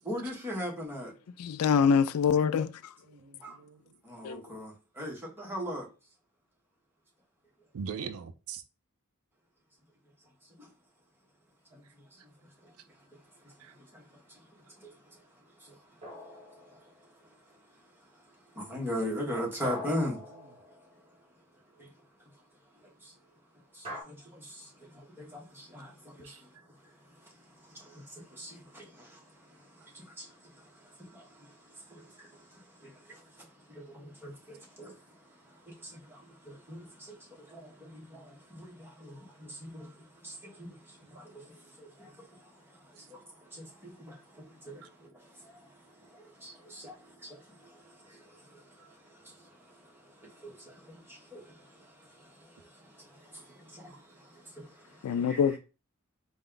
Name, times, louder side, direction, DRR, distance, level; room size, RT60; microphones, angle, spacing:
voice 1, 0.0-1.1 3.4-3.6 4.0-5.9 10.6-10.7 11.7-11.8 12.2-12.3 13.8-14.4 14.8-14.9 15.6-15.8 18.5-20.2 21.8-21.9 23.0-23.1 23.7-26.5 27.2-27.3 27.6-35.0 35.5-42.5 42.8-55.4, equal, 10° right, 1.2 m, -42 dB
voice 2, 1.4-2.7 4.2-4.4 55.0-55.6, left 6 dB, 80° left, 0.3 m, -24 dB
voice 3, 3.1-3.8 7.7-8.6 13.6-13.7 26.2-26.4 48.8-48.9 53.9-54.0, right 6 dB, 65° right, 0.4 m, -41 dB
sound 1, 16.0-17.2 19.6-21.3 23.8-24.0, left 1 dB, 25° right, 1.4 m, -43 dB
4.1 x 2.3 x 3.7 m
head